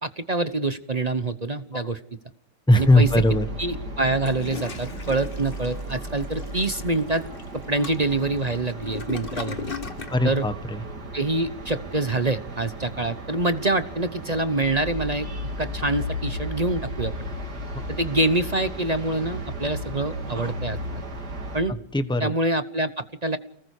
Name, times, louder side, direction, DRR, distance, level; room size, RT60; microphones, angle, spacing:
voice 1, 0.0-2.0 2.8-3.1 3.6-7.2 7.7-9.6 10.2-10.4 11.1-15.3 15.6-17.1 17.9-20.8 21.5-21.7 22.2-23.4, right 2 dB, 30° right, 12 dB, 0.8 m, -25 dB
voice 2, 2.7-3.5 10.1-10.8 21.7-22.3, left 1 dB, 5° left, 10 dB, 1.0 m, -20 dB
sound 1, 2.7-21.6, right 1 dB, 65° right, 3.5 m, -35 dB
Toilet flush, 4.0-10.2, left 5 dB, 35° left, 1.5 m, -38 dB
29.5 x 20.0 x 4.8 m, 0.63 s
omnidirectional pair, 1.9 m